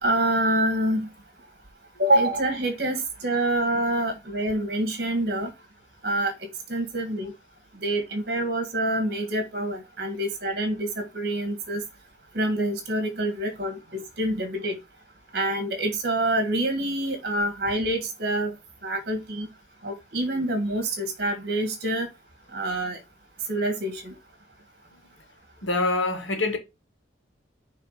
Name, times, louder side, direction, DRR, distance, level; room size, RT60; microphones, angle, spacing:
voice 1, 0.0-1.1 2.0-5.5 6.0-6.3 6.7-7.3 7.8-11.8 12.3-14.8 15.3-18.5 18.8-19.5 19.8-22.1 22.5-23.0 23.5-24.1, right 1 dB, 55° right, 1.6 m, -26 dB
voice 2, 25.6-26.6, left 2 dB, 80° left, 2.1 m, -25 dB
5.7 x 3.5 x 5.1 m
head